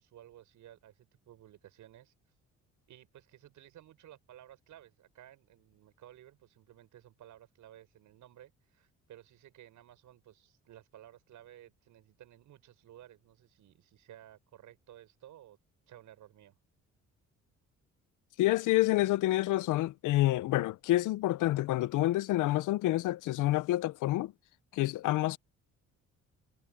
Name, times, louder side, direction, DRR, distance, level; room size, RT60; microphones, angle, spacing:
voice 1, 0.0-2.1 2.9-15.6 15.9-16.6, right 12 dB, 80° right, 5.9 m, -55 dB
voice 2, 18.4-24.3 24.7-25.4, left 16 dB, 85° left, 0.7 m, -28 dB
cardioid pair, 90°, 30 cm